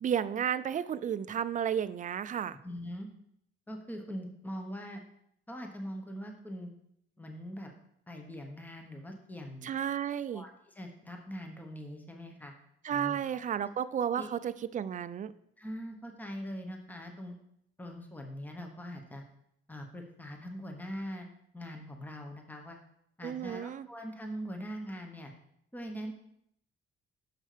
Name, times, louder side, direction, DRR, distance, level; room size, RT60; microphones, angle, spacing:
voice 1, 0.0-2.6 9.6-10.4 12.8-15.3 23.2-23.9, right 9 dB, 40° right, 14 dB, 0.4 m, -32 dB
voice 2, 2.6-3.1 3.7-5.0 5.5-6.7 7.2-7.7 8.1-9.7 10.3-12.5 12.9-13.4 14.1-14.3 15.6-17.4 17.8-19.2 19.7-22.8 23.2-25.3 25.7-26.1, equal, 10° left, 3 dB, 1.2 m, -42 dB
6.6 x 5.3 x 5.0 m, 0.74 s
cardioid pair, 90°, 20 cm